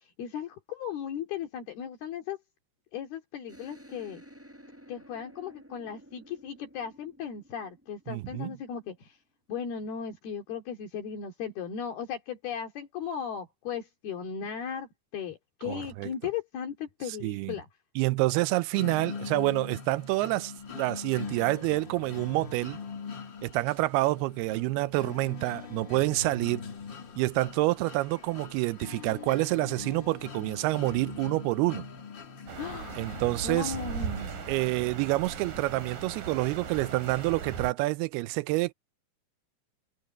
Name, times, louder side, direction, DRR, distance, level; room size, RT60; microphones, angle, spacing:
voice 1, 0.2-2.4 2.9-4.2 4.9-9.2 9.5-17.7 32.6-33.2 33.4-34.3, left 7 dB, 70° left, 4.3 m, -37 dB
sound 1, 3.5-8.8, equal, 5° right, 4.7 m, -53 dB
voice 2, 8.1-8.6 15.7-16.1 17.1-17.6 18.0-22.8 23.4-26.6 27.2-31.8 33.0-33.7 34.5-38.7, right 20 dB, 80° right, 2.5 m, -28 dB
sound 2, 18.7-34.7, left 5 dB, 45° left, 1.5 m, -42 dB
sound 3, 32.5-37.7, right 6 dB, 55° right, 4.9 m, -38 dB
omnidirectional pair, 4.7 m